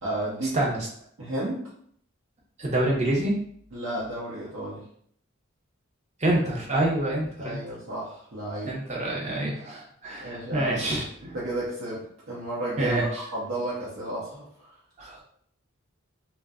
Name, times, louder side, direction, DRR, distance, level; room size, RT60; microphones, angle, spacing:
voice 1, 0.0-0.6 1.2-1.7 3.7-4.8 7.4-8.8 10.2-10.9 11.2-14.7, right 1 dB, 75° right, -7 dB, 0.7 m, -32 dB
voice 2, 0.5-0.9 2.6-3.4 6.2-7.6 8.7-11.0 12.8-13.1 15.0-15.2, right 1 dB, 35° right, -2 dB, 0.5 m, -26 dB
2.6 x 2.1 x 2.4 m, 0.62 s
head